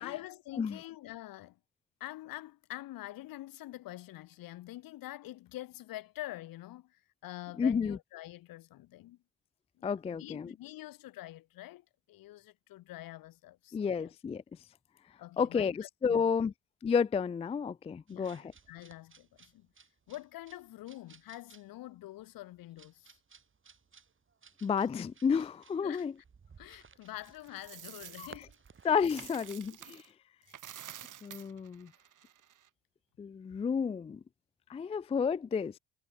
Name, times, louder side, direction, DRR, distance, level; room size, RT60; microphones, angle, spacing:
voice 1, 0.0-1.6 2.0-9.2 9.8-14.1 15.2-16.5 18.1-19.7 20.1-23.1 25.8-26.1 26.6-28.5 29.9-30.0 30.5-30.6, left 16 dB, 70° left, 2.7 m, -46 dB
voice 2, 7.6-8.0 9.8-10.5 13.7-14.4 15.4-16.5 16.8-18.5 24.6-26.1 28.2-28.3 28.8-30.0 31.2-31.9 33.2-34.2 34.7-35.7, left 6 dB, 20° left, 0.4 m, -31 dB
sound 1, 18.1-30.0, right 5 dB, 35° right, 2.9 m, -59 dB
Coin (dropping), 27.2-30.1 30.4-32.7, right 10 dB, 60° right, 4.2 m, -50 dB
hypercardioid pair, 60°, 35 cm